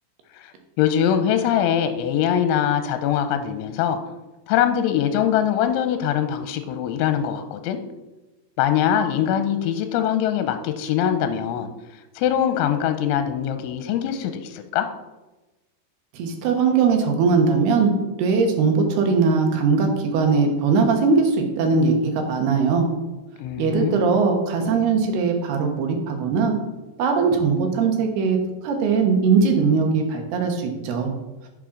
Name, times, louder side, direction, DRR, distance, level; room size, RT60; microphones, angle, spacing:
voice 1, 0.8-4.0 4.5-7.8 8.6-11.7 12.2-14.9 23.4-24.2, left 9 dB, 85° left, 8 dB, 3.0 m, -22 dB
voice 2, 16.1-17.9 18.2-22.9 23.6-26.5 27.0-28.4 28.6-31.1, right 5 dB, 70° right, 3 dB, 2.8 m, -20 dB
11.0 x 7.4 x 3.8 m, 1.1 s
omnidirectional pair, 5.5 m